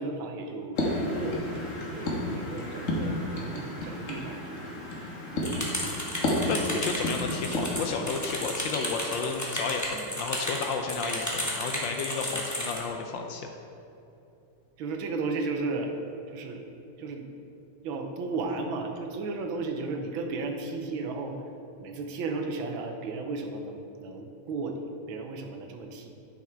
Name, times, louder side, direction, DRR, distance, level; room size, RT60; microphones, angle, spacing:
voice 1, 0.0-1.5 1.9-4.8 5.3-6.0 14.8-15.9 16.3-16.7 17.0-17.3 17.8-21.3 21.8-26.1, right 3 dB, 70° right, 4 dB, 1.5 m, -34 dB
sound 1, 0.8-9.4, left 1 dB, 40° left, 1.5 m, -32 dB
sound 2, 5.4-12.8, left 1 dB, 10° left, 1.0 m, -33 dB
voice 2, 6.5-13.5, left 5 dB, 70° left, 4 dB, 1.2 m, -32 dB
9.9 x 5.9 x 4.4 m, 2.8 s
omnidirectional pair, 2.3 m